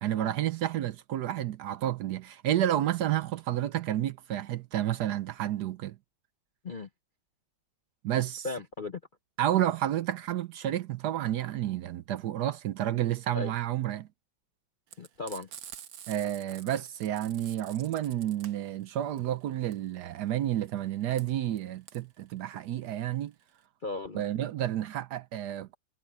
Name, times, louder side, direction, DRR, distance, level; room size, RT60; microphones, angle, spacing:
voice 1, 0.0-6.0 8.0-8.5 9.4-14.1 16.1-23.3 24.1-25.8, right 12 dB, 70° right, 1.1 m, -30 dB
voice 2, 8.4-9.0 13.3-13.5 15.0-15.5 23.8-24.2, left 3 dB, 45° left, 0.7 m, -36 dB
Frying (food), 14.9-23.6, right 9 dB, 85° right, 1.8 m, -49 dB
omnidirectional pair, 2.1 m